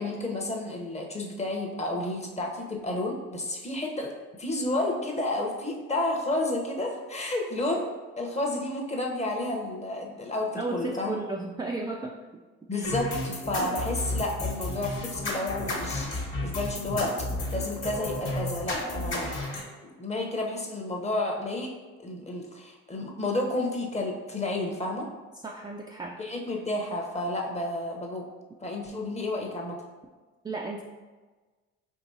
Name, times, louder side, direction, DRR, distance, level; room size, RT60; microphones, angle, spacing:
voice 1, 0.0-7.9 8.2-11.1 12.7-17.1 17.5-19.3 20.0-21.7 22.0-25.1 26.2-28.3 28.6-29.8, left 2 dB, 20° left, 0 dB, 0.8 m, -31 dB
voice 2, 10.5-12.1 12.7-12.9 25.4-26.2 30.4-30.8, right 3 dB, 15° right, -1 dB, 0.3 m, -34 dB
sound 1, 12.8-19.6, left 2 dB, 35° left, 1.2 m, -32 dB
4.6 x 2.9 x 2.7 m, 1.3 s
hypercardioid pair, 60°, 34 cm